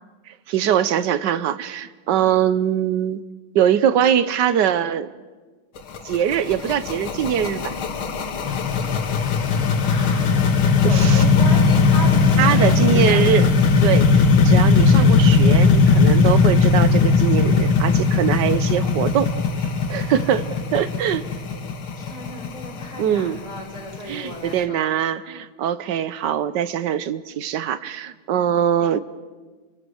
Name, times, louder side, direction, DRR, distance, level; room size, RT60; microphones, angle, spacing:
voice 1, 0.3-3.2 3.5-5.1 6.0-7.7 10.8-11.3 12.4-13.5 13.8-19.3 19.6-21.2 23.0-23.4 24.1-29.0, right 9 dB, 65° right, 13 dB, 1.4 m, -22 dB
sound 1, 5.8-24.5, left 4 dB, 85° left, 2.3 m, -18 dB
voice 2, 9.8-10.4 10.8-13.2 22.0-24.9 28.3-28.5, left 1 dB, 20° left, -1 dB, 5.0 m, -34 dB
28.5 x 22.5 x 6.4 m, 1.3 s
omnidirectional pair, 2.2 m